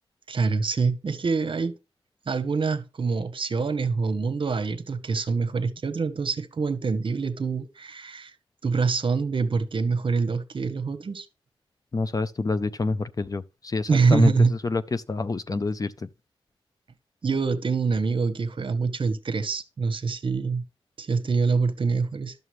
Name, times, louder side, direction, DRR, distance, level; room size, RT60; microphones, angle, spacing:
voice 1, 0.3-1.7 2.3-8.3 8.6-11.3 13.9-14.5 17.2-20.6 21.0-22.3, right 4 dB, 55° right, 0.9 m, -25 dB
voice 2, 11.9-16.1, left 3 dB, 35° left, 0.5 m, -27 dB
11.0 x 6.7 x 3.1 m
cardioid pair, 60°, 10 cm